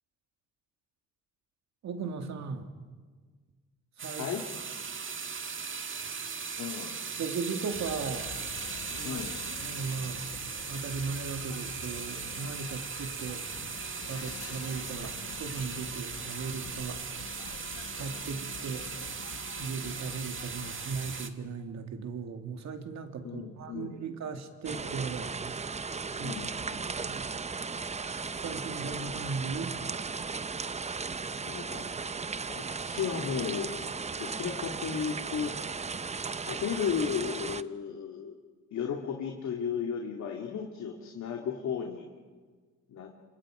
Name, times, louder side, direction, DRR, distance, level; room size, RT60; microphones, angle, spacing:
voice 1, 1.8-2.7 4.0-4.3 7.1-8.3 8.8-9.2 9.6-10.2 10.7-13.4 14.1-17.0 17.9-18.9 19.6-25.4 26.2-26.4 27.0-27.3 28.3-29.8, right 5 dB, 65° right, 5 dB, 2.8 m, -37 dB
sound 1, 4.0-21.3, right 6 dB, 40° right, 1.8 m, -38 dB
voice 2, 6.6-6.9 9.0-9.4 23.2-24.0 26.2-26.9 31.4-33.8 34.2-35.5 36.4-38.4 38.7-42.1 42.9-43.1, left 7 dB, 65° left, 1 dB, 2.7 m, -35 dB
sound 2, 7.7-21.2, left 8 dB, 50° left, 1.3 m, -46 dB
sound 3, 24.6-37.6, right 5 dB, 20° right, 0.7 m, -36 dB
28.5 x 26.5 x 5.1 m, 1.5 s
cardioid pair, 90°, 30 cm